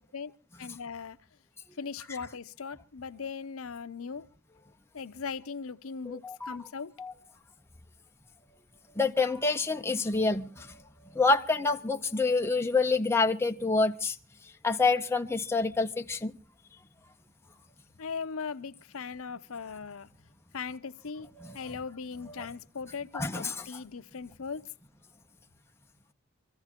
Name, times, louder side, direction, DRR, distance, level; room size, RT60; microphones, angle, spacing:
voice 1, 0.6-1.2 1.8-4.3 4.9-6.9 18.0-20.1 20.5-21.3 21.5-24.7, left 5 dB, 70° left, 0.6 m, -39 dB
voice 2, 6.1-6.6 7.0-7.1 9.0-10.8 11.1-14.2 14.6-16.3 21.4-21.6 23.1-23.8, left 3 dB, 10° left, 0.7 m, -27 dB
26.5 x 14.5 x 2.9 m
head